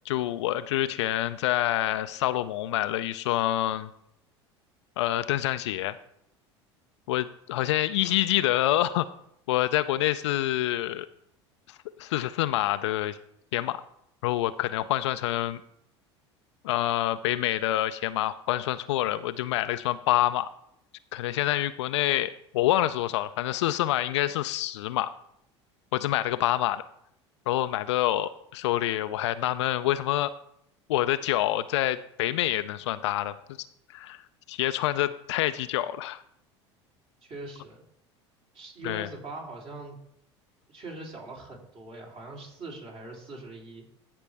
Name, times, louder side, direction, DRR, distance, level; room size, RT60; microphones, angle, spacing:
voice 1, 0.1-3.9 5.0-6.0 7.1-9.1 9.5-11.1 11.7-13.2 13.5-13.8 14.2-15.6 16.6-20.5 21.1-25.1 25.9-26.8 27.5-30.3 30.9-33.3 33.9-34.2 34.5-36.2 38.8-39.1, left 14 dB, 75° left, 12 dB, 0.4 m, -27 dB
voice 2, 37.2-37.8 38.5-40.0 40.7-43.8, right 2 dB, 45° right, -1 dB, 3.4 m, -42 dB
14.5 x 5.2 x 3.4 m, 0.74 s
hypercardioid pair, 75°, 15 cm